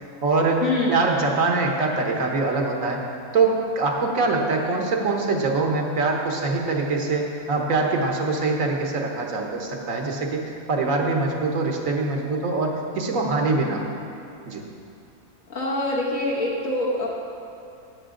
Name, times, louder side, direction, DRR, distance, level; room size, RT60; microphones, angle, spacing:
voice 1, 0.2-3.0 3.3-10.4 10.7-13.9 14.4-14.6, right 3 dB, 65° right, 1 dB, 1.4 m, -23 dB
voice 2, 15.5-17.1, left 2 dB, 65° left, -5 dB, 1.6 m, -25 dB
12.0 x 8.7 x 3.8 m, 2.5 s
omnidirectional pair, 1.6 m